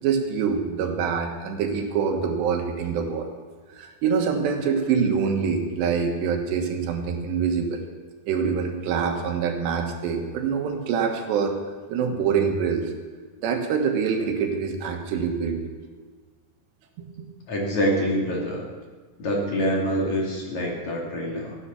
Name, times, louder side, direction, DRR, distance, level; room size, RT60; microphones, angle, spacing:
voice 1, 0.0-3.3 3.8-7.9 8.3-11.6 11.9-12.8 13.4-15.6 17.0-17.3, right 6 dB, 80° right, 3 dB, 3.6 m, -25 dB
voice 2, 17.5-18.6 19.2-21.6, equal, 45° left, -2 dB, 3.4 m, -25 dB
15.0 x 9.8 x 7.0 m, 1.5 s
omnidirectional pair, 4.9 m